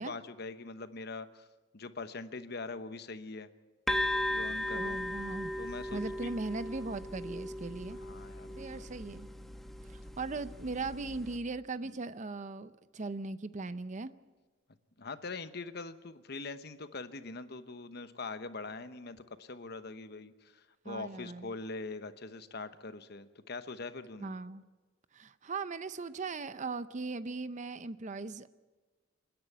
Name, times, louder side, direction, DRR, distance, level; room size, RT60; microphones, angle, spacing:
voice 1, 0.0-1.5 1.7-3.5 4.3-5.0 5.6-6.3 8.0-8.9 11.8-12.0 15.0-24.3, left 3 dB, 55° left, 11 dB, 1.0 m, -43 dB
sound 1, 3.9-11.4, left 1 dB, ahead, 1.2 m, -37 dB
voice 2, 4.7-5.5 5.9-8.0 8.6-9.3 9.9-14.1 20.9-21.5 24.2-24.6 25.1-28.5, right 3 dB, 40° right, 14 dB, 0.6 m, -39 dB
28.0 x 10.5 x 9.3 m, 1.3 s
head